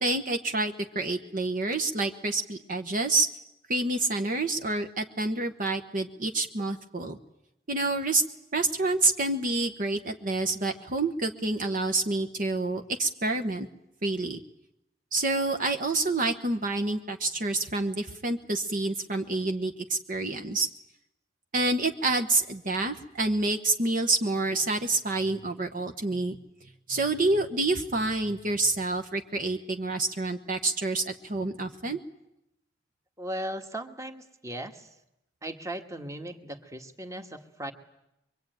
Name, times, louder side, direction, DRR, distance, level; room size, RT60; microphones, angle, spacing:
voice 1, 0.0-3.3 3.7-7.2 7.7-8.2 8.5-13.7 14.0-14.4 15.1-20.7 21.5-26.4 26.9-32.0, right 2 dB, 50° right, 6 dB, 1.2 m, -28 dB
voice 2, 33.2-34.9 35.4-37.7, right 1 dB, 15° right, 6 dB, 1.7 m, -37 dB
24.0 x 23.5 x 9.2 m, 0.86 s
head